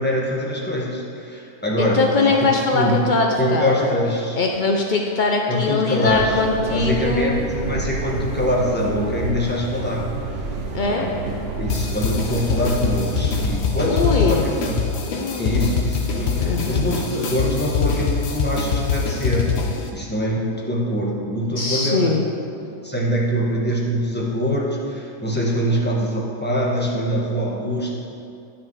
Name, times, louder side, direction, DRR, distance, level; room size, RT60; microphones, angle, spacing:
voice 1, 0.0-2.3 2.7-3.0 3.3-4.4 5.5-6.4 6.7-10.1 10.9-14.8 15.4-22.1 22.8-27.9, equal, 5° left, -4 dB, 1.2 m, -24 dB
voice 2, 1.8-3.9 4.3-7.4 10.7-11.1 13.9-14.5 15.1-15.6 16.4-16.8 21.6-22.2, left 4 dB, 80° left, 1 dB, 0.4 m, -21 dB
sound 1, 6.1-13.6, right 3 dB, 50° right, 0.8 m, -29 dB
sound 2, 11.7-19.9, left 5 dB, 50° left, 0.9 m, -24 dB
11.5 x 6.2 x 4.7 m, 2.5 s
omnidirectional pair, 1.7 m